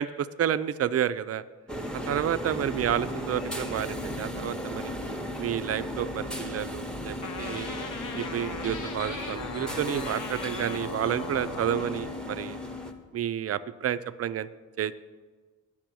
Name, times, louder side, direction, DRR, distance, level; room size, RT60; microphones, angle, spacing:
voice 1, 0.0-1.4 1.9-4.9 5.4-7.7 8.1-12.6 13.1-14.5 14.8-14.9, right 10 dB, 50° right, 15 dB, 0.4 m, -30 dB
sound 1, 1.7-12.9, equal, 5° left, 0.8 m, -37 dB
sound 2, 2.7-13.1, left 4 dB, 85° left, 0.6 m, -42 dB
sound 3, 7.2-12.2, left 4 dB, 65° left, 0.9 m, -39 dB
10.0 x 5.9 x 6.1 m, 1.4 s
cardioid pair, 95°, 33 cm